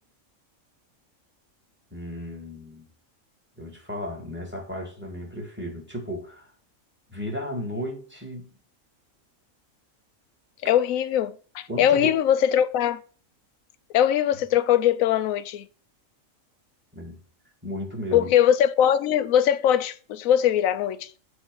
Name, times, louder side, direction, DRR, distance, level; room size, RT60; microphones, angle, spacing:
voice 1, 1.9-2.9 3.6-6.5 7.1-8.5 11.7-12.2 16.9-17.2 17.6-18.3, equal, 10° right, 1.8 m, -34 dB
voice 2, 10.6-13.0 13.9-15.6 18.1-21.2, left 10 dB, 90° left, 1.0 m, -21 dB
8.0 x 3.1 x 6.1 m
omnidirectional pair, 1.4 m